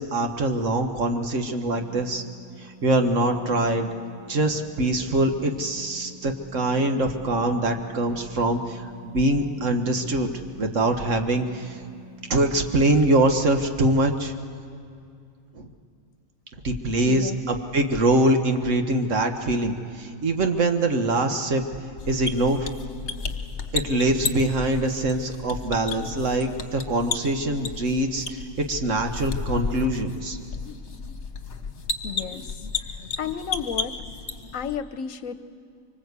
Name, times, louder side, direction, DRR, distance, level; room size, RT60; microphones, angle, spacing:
voice 1, 0.0-2.2 2.6-3.9 4.3-10.3 10.6-11.8 12.3-14.3 15.6-15.7 16.6-21.6 22.1-22.7 23.7-28.4 28.7-30.4, right 1 dB, 65° right, 5 dB, 1.7 m, -23 dB
sound 1, 1.7-13.1, right 1 dB, 10° left, 4.9 m, -48 dB
voice 2, 17.0-17.5 32.0-32.7 33.2-34.0 34.5-35.3, left 7 dB, 75° left, 11 dB, 1.2 m, -32 dB
sound 2, 22.0-34.7, left 4 dB, 55° left, 1.5 m, -33 dB
24.5 x 24.5 x 8.2 m, 2.4 s
omnidirectional pair, 1.4 m